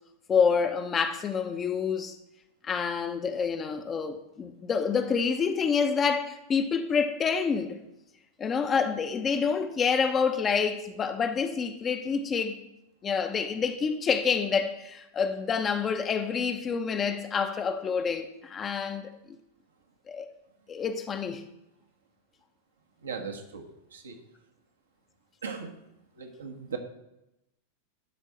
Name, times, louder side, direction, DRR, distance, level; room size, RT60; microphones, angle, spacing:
voice 1, 0.3-2.1 2.6-7.8 8.4-12.6 13.0-19.1 20.1-20.3 20.7-21.4, left 6 dB, 25° left, 0.9 m, -27 dB
voice 2, 23.0-24.2 25.4-25.8 26.2-26.8, right 6 dB, 70° right, 1.5 m, -38 dB
12.0 x 4.6 x 7.5 m
figure-of-eight pair, 90°, 0 cm